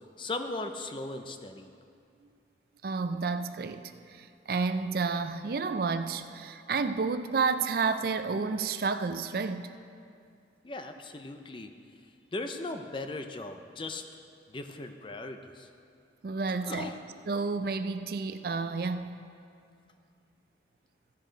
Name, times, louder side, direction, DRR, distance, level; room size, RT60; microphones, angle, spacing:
voice 1, 0.2-1.7 10.6-11.7 12.3-14.0 14.5-15.7 16.6-17.0, left 2 dB, 25° left, 7 dB, 0.5 m, -38 dB
voice 2, 2.8-9.7 16.2-16.9 17.3-19.1, right 4 dB, 55° right, 10 dB, 0.4 m, -30 dB
15.0 x 6.5 x 5.1 m, 2.4 s
head